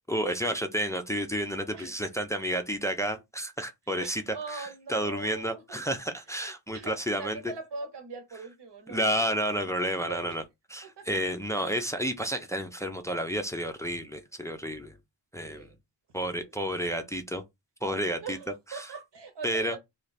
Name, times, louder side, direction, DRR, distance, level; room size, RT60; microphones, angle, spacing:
voice 1, 0.1-4.2 4.5-7.4 8.9-10.4 10.7-15.0 15.3-15.7 16.1-17.4 17.8-18.4 18.7-18.9 19.4-19.8, equal, 5° left, 0.4 m, -31 dB
voice 2, 4.0-5.6 6.4-9.3 9.7-9.8 10.0-10.4 10.8-11.1 11.7-11.9 15.4-15.8 16.2-16.7 18.2-19.8, right 4 dB, 65° right, 1.2 m, -42 dB
3.2 x 2.4 x 4.0 m
wide cardioid pair, 110°, 45 cm